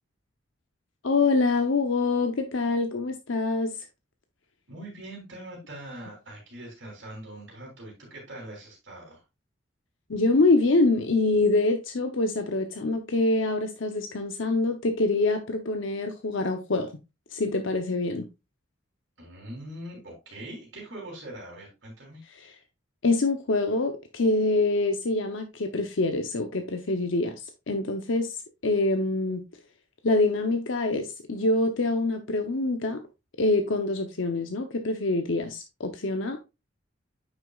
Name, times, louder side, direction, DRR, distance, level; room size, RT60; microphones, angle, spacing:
voice 1, 1.0-3.8 10.1-16.9 17.3-18.3 22.4-22.5 23.0-27.4 27.7-29.4 30.0-33.0 33.4-36.4, left 2 dB, 75° left, 0.8 m, -25 dB
voice 2, 4.7-9.2 19.2-22.2, right 1 dB, 65° right, 3.1 m, -42 dB
9.1 x 6.2 x 2.4 m
head